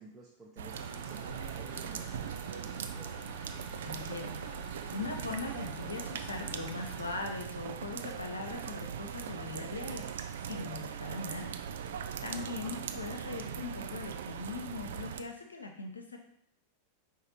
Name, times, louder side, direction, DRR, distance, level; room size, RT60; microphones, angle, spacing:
voice 1, 0.0-3.2 12.4-12.8, right 3 dB, 20° right, -5 dB, 0.8 m, -52 dB
sound 1, 0.6-15.2, right 7 dB, 60° right, 0.3 m, -40 dB
sound 2, 0.7-8.5 8.9-9.0 9.4-9.5 9.7-10.1, right 1 dB, ahead, 1.0 m, -51 dB
voice 2, 3.8-4.4 4.9-11.5 12.2-16.2, left 3 dB, 75° left, 4 dB, 0.7 m, -40 dB
5.1 x 2.5 x 4.1 m, 0.77 s
figure-of-eight pair, 90°, 0 cm